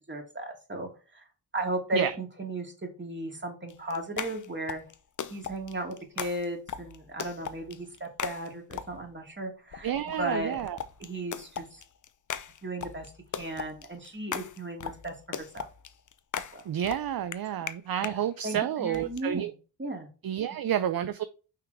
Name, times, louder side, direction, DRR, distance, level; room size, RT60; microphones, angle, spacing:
voice 1, 0.1-1.3 1.5-4.8 5.3-10.6 11.0-11.8 12.6-15.7 16.3-16.6 18.0-18.2 18.4-19.5 19.8-20.1, right 1 dB, 20° right, 2.6 m, -35 dB
sound 1, 3.7-9.2 9.7-18.2 18.9-19.2, left 7 dB, 40° left, 0.7 m, -39 dB
voice 2, 9.8-10.8 16.7-19.5 20.2-21.2, right 10 dB, 45° right, 0.6 m, -30 dB
5.7 x 3.7 x 4.8 m
cardioid pair, 50°, 49 cm